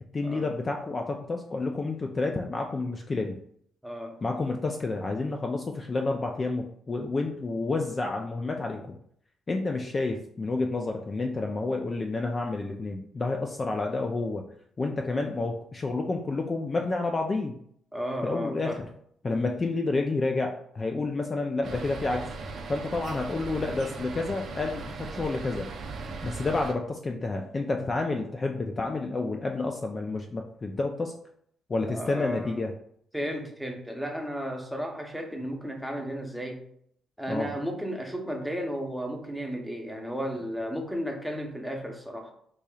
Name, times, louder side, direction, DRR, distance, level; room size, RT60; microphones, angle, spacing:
voice 1, 0.1-3.4 4.2-9.0 9.5-14.4 14.8-17.5 18.2-18.8 19.2-22.3 22.7-25.7 26.2-31.1 31.7-32.7 37.3-37.5, left 3 dB, 30° left, 3 dB, 0.4 m, -29 dB
voice 2, 3.8-4.2 17.9-18.8 31.9-32.6 33.1-36.6 37.2-42.3, equal, ahead, 1 dB, 0.8 m, -34 dB
sound 1, 21.6-26.7, right 4 dB, 60° right, 0.6 m, -38 dB
4.7 x 2.8 x 2.3 m, 0.67 s
cardioid pair, 90°, 0 cm